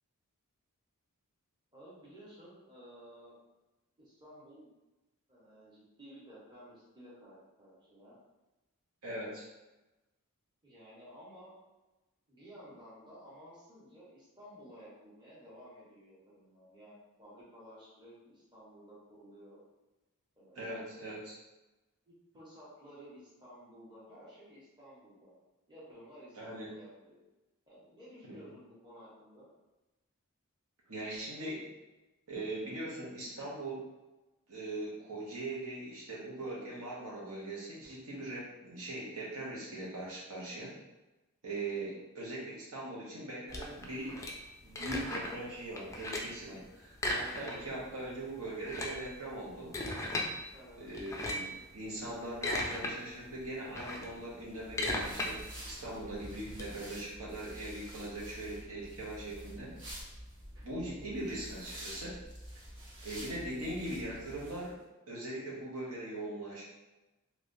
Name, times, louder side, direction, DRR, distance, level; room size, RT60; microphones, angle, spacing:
voice 1, 1.7-3.4 4.0-4.7 5.3-8.2 10.6-11.5 12.3-19.6 20.4-20.7 22.1-25.3 25.7-27.2 27.7-29.5 41.7-41.8 50.5-51.0 60.7-61.2, equal, 20° right, -8 dB, 1.1 m, -54 dB
voice 2, 9.0-9.4 20.6-21.3 26.4-26.7 28.3-28.4 30.9-31.7 32.3-33.9 34.5-40.7 41.4-44.2 44.6-49.7 50.8-59.7 60.6-62.2 63.0-64.8 65.1-66.6, right 1 dB, 80° right, -5 dB, 1.0 m, -41 dB
sound 1, 43.5-45.4 45.8-46.4 46.9-47.8 48.1-48.2 48.5-50.3 50.9-51.6 52.1-52.9 53.3-56.6, left 1 dB, 15° left, 0.3 m, -37 dB
sound 2, 54.5-64.7, equal, 55° right, 1.0 m, -48 dB
3.2 x 3.0 x 2.6 m, 1.1 s
head